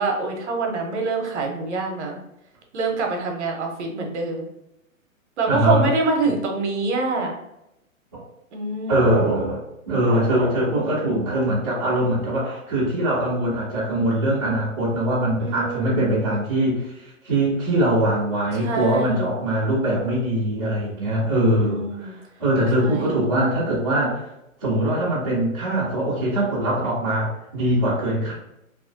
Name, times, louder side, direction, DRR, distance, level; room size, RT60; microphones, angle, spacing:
voice 1, 0.0-2.2 2.7-4.5 5.4-7.4 8.5-9.4 15.4-16.1 18.6-19.3 21.4-22.1 22.8-23.2, right 3 dB, 55° right, 2 dB, 0.7 m, -25 dB
voice 2, 5.5-5.9 8.1-8.2 8.9-22.1 22.4-24.3 24.6-28.3, right 1 dB, 20° right, -10 dB, 0.3 m, -22 dB
2.3 x 2.1 x 2.5 m, 0.85 s
hypercardioid pair, 145°, 41 cm